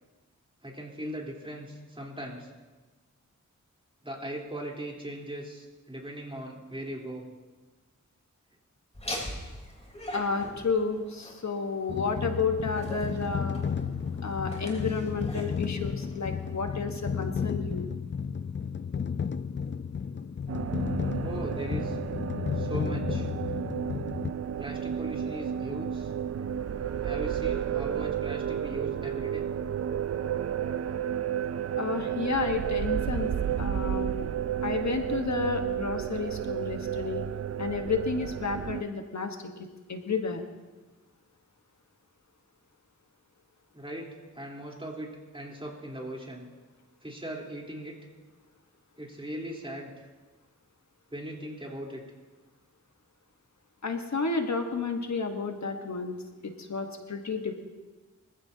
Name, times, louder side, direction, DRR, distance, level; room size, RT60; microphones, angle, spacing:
voice 1, 0.6-2.5 4.0-7.2 21.2-22.0 22.5-23.3 24.6-26.1 27.0-29.5 43.7-44.1 44.3-45.1 45.3-46.5 47.0-48.0 49.0-50.1 51.1-52.0, right 1 dB, 20° right, -2 dB, 3.5 m, -39 dB
Laughter, 8.9-16.6, left 1 dB, 20° left, 3.7 m, -42 dB
voice 2, 10.1-13.6 14.2-17.8 31.8-33.3 33.6-34.3 34.6-37.2 37.6-39.4 39.9-40.4 53.8-56.2 56.4-57.6, left 4 dB, 65° left, 5 dB, 1.3 m, -31 dB
sound 1, 11.9-24.3, left 6 dB, 40° left, 0.5 m, -33 dB
sound 2, 20.5-38.8, right 9 dB, 55° right, 0.4 m, -32 dB
24.5 x 15.0 x 2.8 m, 1.2 s
wide cardioid pair, 75°, 30 cm